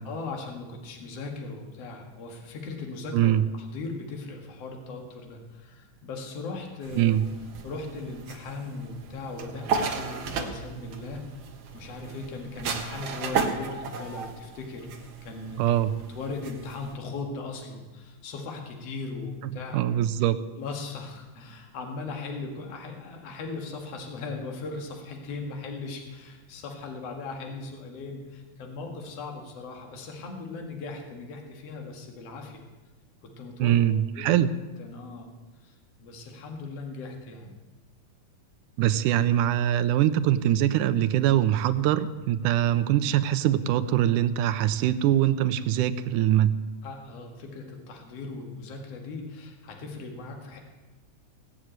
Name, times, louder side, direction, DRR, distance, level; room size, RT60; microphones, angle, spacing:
voice 1, 0.1-3.3 3.6-7.1 7.6-11.2 11.7-15.6 16.1-19.8 20.6-32.6 33.2-33.7 34.2-34.3 34.8-35.3 35.6-35.7 36.0-37.6 46.8-50.6, left 3 dB, 55° left, 2 dB, 2.7 m, -38 dB
voice 2, 3.1-3.4 7.0-7.2 15.6-16.0 19.7-20.4 33.6-34.5 38.8-46.5, right 11 dB, 80° right, 12 dB, 2.1 m, -23 dB
sound 1, 6.8-17.0, right 5 dB, 55° right, 1.5 m, -35 dB
17.5 x 6.3 x 8.9 m, 1.2 s
omnidirectional pair, 3.7 m